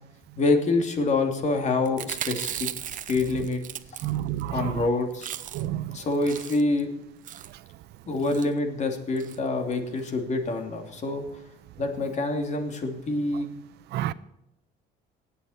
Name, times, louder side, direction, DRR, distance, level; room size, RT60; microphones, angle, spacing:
voice 1, 0.4-2.7 3.1-3.6 4.5-5.3 5.9-6.9 8.1-11.2 11.8-13.5, left 3 dB, 45° left, 5 dB, 2.8 m, -26 dB
Chewing mastication, 1.9-4.5 4.8-4.9 5.1-5.8 6.1-6.8 7.2-7.6 8.2-8.5 9.2-9.4 9.7-9.8 10.0-10.1, right 10 dB, 50° right, 0.8 m, -36 dB
voice 2, 4.0-4.7 5.5-6.0 13.9-14.1, right 13 dB, 80° right, 16 dB, 0.8 m, -29 dB
19.5 x 8.4 x 4.4 m, 0.84 s
cardioid pair, 110°, 17 cm